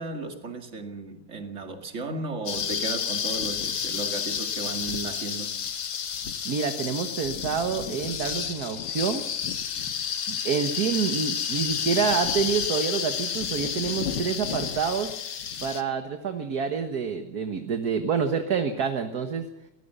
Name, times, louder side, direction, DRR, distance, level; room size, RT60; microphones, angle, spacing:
voice 1, 0.0-5.6, right 3 dB, 40° right, 5 dB, 2.4 m, -35 dB
sound 1, 2.5-15.8, left 7 dB, 65° left, 1.9 m, -30 dB
voice 2, 6.5-9.2 10.3-15.1 15.6-19.5, right 6 dB, 55° right, 7 dB, 1.7 m, -27 dB
22.5 x 18.5 x 6.8 m, 0.80 s
omnidirectional pair, 2.0 m